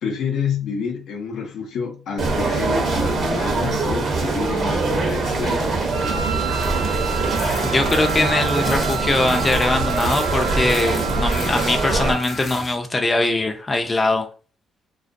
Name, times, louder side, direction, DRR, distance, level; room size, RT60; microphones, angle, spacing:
voice 1, 0.0-5.8, left 6 dB, 80° left, 0.5 m, -28 dB
sound 1, 2.2-12.1, right 3 dB, 55° right, 0.7 m, -23 dB
Wind instrument woodwind instrument, 5.9-12.5, right 10 dB, 90° right, 0.3 m, -30 dB
sound 2, 6.6-12.8, left 2 dB, 45° left, 0.8 m, -36 dB
voice 2, 7.6-14.3, left 2 dB, 25° left, 0.4 m, -21 dB
2.3 x 2.1 x 2.5 m
cardioid pair, 90°, 0 cm